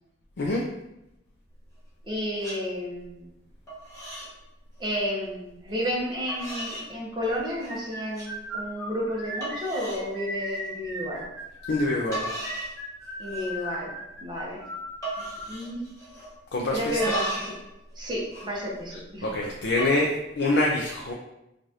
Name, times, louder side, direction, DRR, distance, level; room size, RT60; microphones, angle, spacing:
sound 1, 1.5-2.1 2.4-2.6 3.0-3.4 3.7-4.3 4.6-5.0 5.7-5.8 6.3-6.9 7.3-7.8 8.1-8.3 8.8-8.9 9.4-10.1 10.4-10.7 11.8-11.9 12.1-12.8 13.0-13.6 13.9-14.0 14.3-14.6 15.0-16.4 16.7-17.6 17.9-19.2 19.7-20.0, right 1 dB, 20° left, 1.3 m, -36 dB
voice 1, 2.0-3.3 4.8-11.2 13.2-13.9 14.2-14.6 15.2-15.9 16.7-17.5 18.0-19.3, equal, 25° right, -4 dB, 0.9 m, -31 dB
sound 2, 7.5-15.5, right 1 dB, ahead, 0.8 m, -37 dB
voice 2, 11.7-12.3 16.5-17.0 19.2-21.1, left 2 dB, 70° left, -2 dB, 0.4 m, -25 dB
4.7 x 2.5 x 2.8 m, 0.89 s
head